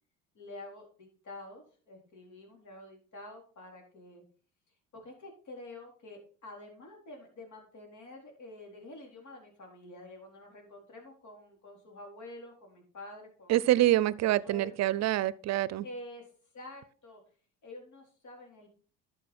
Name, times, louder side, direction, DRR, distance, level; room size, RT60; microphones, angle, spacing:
voice 1, 0.3-4.2 4.9-13.6 14.2-14.7 15.8-17.2 17.6-18.7, left 2 dB, 55° left, 4.3 m, -48 dB
voice 2, 13.5-15.8, right 14 dB, 50° right, 0.6 m, -26 dB
11.5 x 6.5 x 4.4 m
supercardioid pair, 95°, 33 cm